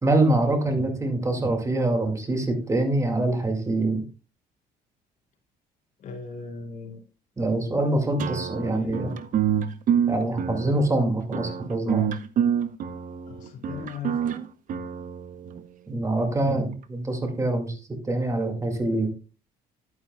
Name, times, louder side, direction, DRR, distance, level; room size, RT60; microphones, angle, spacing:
voice 1, 0.0-4.0 7.4-9.1 10.1-12.1 15.9-17.8 18.0-19.1, right 2 dB, 20° right, 4 dB, 2.2 m, -24 dB
voice 2, 6.0-7.0 8.7-9.3 13.3-14.3, left 5 dB, 50° left, 1 dB, 2.8 m, -38 dB
sound 1, 8.2-15.6, right 8 dB, 50° right, 0.8 m, -27 dB
11.0 x 9.4 x 2.3 m, 0.35 s
cardioid pair, 110°, 17 cm